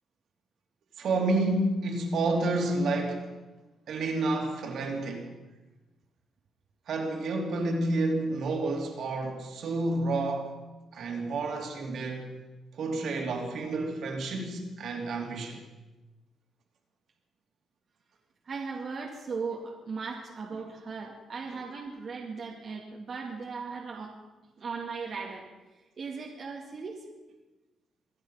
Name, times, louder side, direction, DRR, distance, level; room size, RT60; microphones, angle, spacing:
voice 1, 1.0-3.3 3.9-5.3 6.9-10.5 10.9-12.4 12.7-15.6 21.5-21.7, right 2 dB, 65° right, 3.1 m, -30 dB
voice 2, 18.4-24.2 24.6-25.5 26.0-27.1, right 4 dB, 45° right, 2.1 m, -37 dB
25.0 x 9.9 x 5.7 m
cardioid pair, 110°, 0 cm